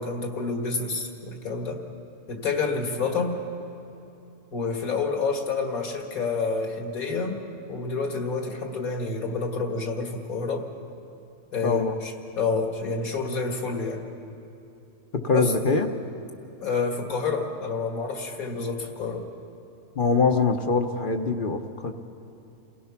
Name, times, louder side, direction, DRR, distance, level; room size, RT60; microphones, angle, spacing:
voice 1, 0.0-1.8 2.3-3.4 4.5-7.4 7.7-10.7 11.5-14.0 15.3-15.5 16.6-19.3, left 4 dB, 70° left, 3 dB, 2.3 m, -28 dB
voice 2, 11.6-12.0 15.2-15.9 20.0-21.9, left 4 dB, 40° left, 6 dB, 1.0 m, -23 dB
28.5 x 17.5 x 5.9 m, 2.9 s
omnidirectional pair, 1.5 m